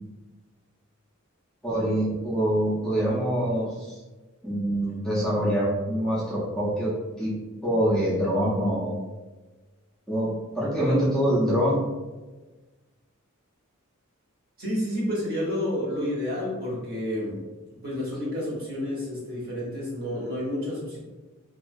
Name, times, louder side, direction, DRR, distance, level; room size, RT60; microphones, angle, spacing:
voice 1, 1.6-4.0 4.4-6.9 7.2-7.3 7.6-8.9 10.1-11.8, equal, 5° left, -8 dB, 0.4 m, -25 dB
voice 2, 14.6-17.4 17.8-21.0, left 1 dB, 45° right, -6 dB, 0.9 m, -30 dB
2.3 x 2.3 x 2.5 m, 1.2 s
head